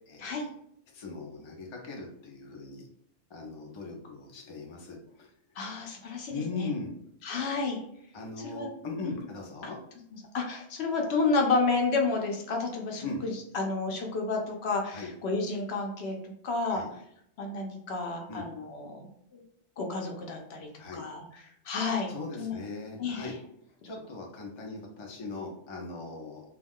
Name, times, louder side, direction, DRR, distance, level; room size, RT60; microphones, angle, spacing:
voice 1, 0.1-0.4 0.9-2.9 3.3-5.3 6.3-6.9 8.1-9.8 13.0-13.2 14.9-15.1 16.6-16.9 18.3-18.5 20.8-21.1 22.1-23.3 23.8-26.4, left 3 dB, 40° left, 0 dB, 0.4 m, -39 dB
voice 2, 5.6-6.7 7.2-7.8 8.4-8.7 9.0-9.1 10.1-16.2 16.4-16.8 17.4-19.4 19.8-22.6 23.0-23.3, left 3 dB, 70° left, 2 dB, 0.8 m, -31 dB
2.3 x 2.3 x 3.5 m, 0.71 s
omnidirectional pair, 1.2 m